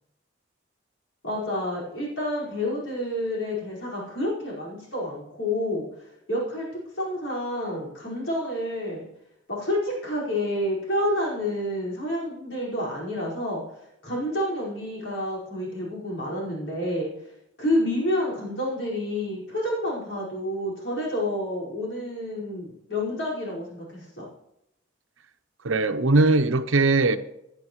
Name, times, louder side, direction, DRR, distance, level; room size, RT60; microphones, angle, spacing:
voice 1, 1.2-5.9 6.3-6.7 7.0-9.1 9.5-13.6 14.0-17.1 17.6-24.2, left 1 dB, 70° left, 5.0 m, -29 dB
voice 2, 25.6-27.2, right 3 dB, 90° right, 0.8 m, -20 dB
15.5 x 10.5 x 3.1 m
head